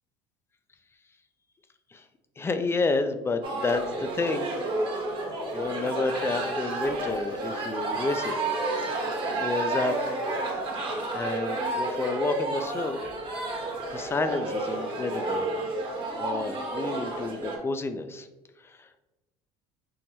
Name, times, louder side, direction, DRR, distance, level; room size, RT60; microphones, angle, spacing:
voice 1, 2.4-4.5 5.5-8.3 9.1-10.0 11.1-13.0 13.9-15.5 16.2-18.3 18.6-18.9, left 3 dB, 15° left, 9 dB, 0.3 m, -30 dB
sound 1, 3.4-17.6, right 2 dB, 35° right, 1.0 m, -31 dB
5.4 x 2.1 x 2.9 m, 1.1 s
supercardioid pair, 85°, 15 cm